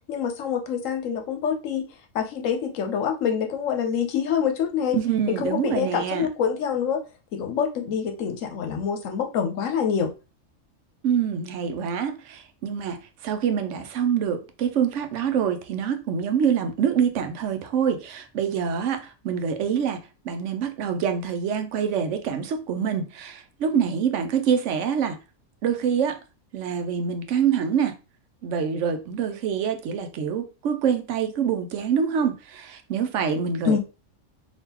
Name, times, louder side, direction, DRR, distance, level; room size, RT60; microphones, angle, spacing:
voice 1, 0.1-1.9 2.1-5.0 5.4-7.0 7.3-10.1 33.6-33.8, left 7 dB, 75° left, 1.1 m, -26 dB
voice 2, 4.9-6.3 11.0-25.2 25.6-26.2 26.5-28.0 28.4-33.8, right 7 dB, 70° right, 0.9 m, -25 dB
3.6 x 2.8 x 2.8 m
omnidirectional pair, 1.4 m